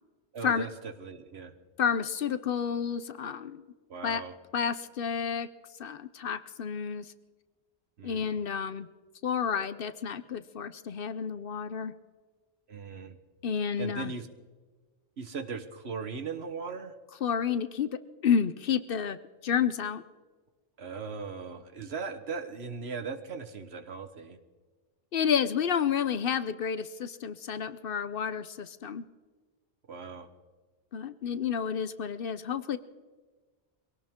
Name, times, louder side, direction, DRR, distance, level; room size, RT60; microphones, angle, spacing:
voice 1, 0.3-1.5 3.9-4.3 8.0-8.4 12.7-13.2 13.8-14.3 15.2-16.9 20.8-24.4 29.9-30.3, right 5 dB, 65° right, 9 dB, 1.4 m, -38 dB
voice 2, 1.8-3.6 4.0-4.2 4.5-5.5 5.8-7.1 8.0-8.9 9.2-11.9 13.4-14.1 17.2-17.9 18.2-19.2 19.4-20.0 25.1-29.0 30.9-32.8, left 7 dB, 60° left, 12 dB, 0.8 m, -30 dB
22.5 x 17.5 x 3.7 m, 1.4 s
omnidirectional pair, 1.2 m